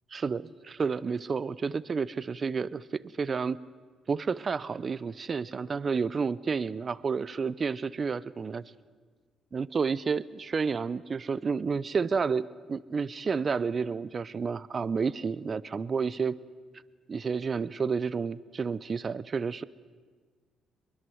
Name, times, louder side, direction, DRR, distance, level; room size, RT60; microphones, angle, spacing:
voice 1, 0.1-3.6 4.1-8.6 9.5-16.4 17.1-19.6, right 5 dB, 40° right, 19 dB, 0.6 m, -30 dB
23.5 x 22.5 x 7.8 m, 1.5 s
cardioid pair, 90°, 0 cm